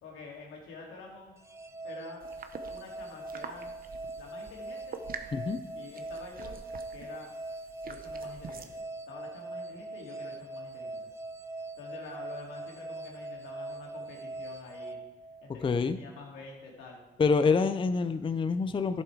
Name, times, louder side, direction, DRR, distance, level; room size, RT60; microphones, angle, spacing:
voice 1, 0.0-1.4 1.8-2.2 2.7-3.8 4.2-5.0 5.7-6.6 6.9-7.3 7.8-11.1 11.8-15.0 15.4-17.0, left 3 dB, 90° left, -1 dB, 2.7 m, -47 dB
sound 1, 1.4-15.8, right 2 dB, 15° right, 0.7 m, -42 dB
sound 2, 2.2-8.8, right 6 dB, 45° right, 0.9 m, -46 dB
voice 2, 15.6-16.0 17.2-19.0, left 4 dB, 25° left, 11 dB, 0.5 m, -26 dB
11.5 x 7.2 x 4.7 m, 1.1 s
cardioid pair, 90°, 20 cm